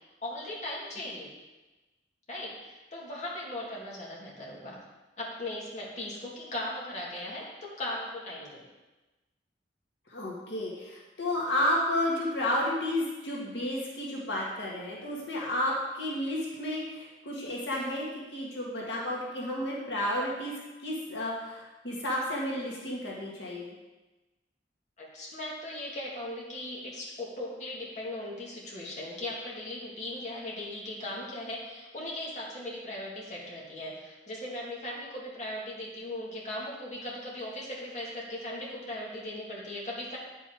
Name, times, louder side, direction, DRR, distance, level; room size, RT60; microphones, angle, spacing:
voice 1, 0.2-1.3 2.3-4.8 5.2-8.6 25.0-40.2, left 1 dB, 45° left, -4 dB, 2.0 m, -38 dB
voice 2, 10.1-18.1 18.3-20.5 20.8-23.7, left 1 dB, 80° left, -4 dB, 1.8 m, -31 dB
9.4 x 5.6 x 4.5 m, 1.1 s
head